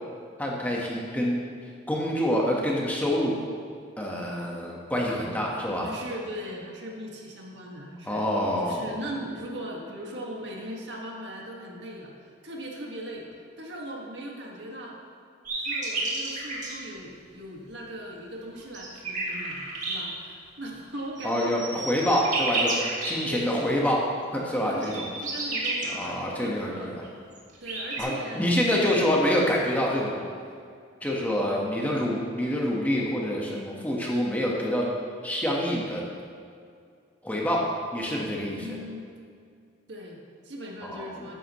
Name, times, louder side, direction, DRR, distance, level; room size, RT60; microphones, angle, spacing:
voice 1, 0.4-1.4 1.9-3.3 4.0-5.9 8.1-8.8 21.2-22.8 23.0-24.0 24.3-25.0 25.8-27.0 28.0-30.2 31.0-34.8 35.2-36.0 37.2-38.7 40.8-41.2, equal, 10° left, -3 dB, 1.3 m, -26 dB
voice 2, 5.8-8.2 8.6-12.1 12.4-13.2 13.6-14.9 15.6-21.8 23.1-23.7 24.7-26.9 27.6-28.5 28.8-29.0 31.4-31.7 38.5-39.0 39.9-41.3, equal, 70° right, -2 dB, 1.8 m, -39 dB
sound 1, 15.4-16.7 18.6-20.0 21.0-23.1 24.6-25.9 27.0-27.1 27.3-28.0, right 3 dB, 40° right, 2.1 m, -30 dB
14.0 x 10.0 x 3.1 m, 2.3 s
head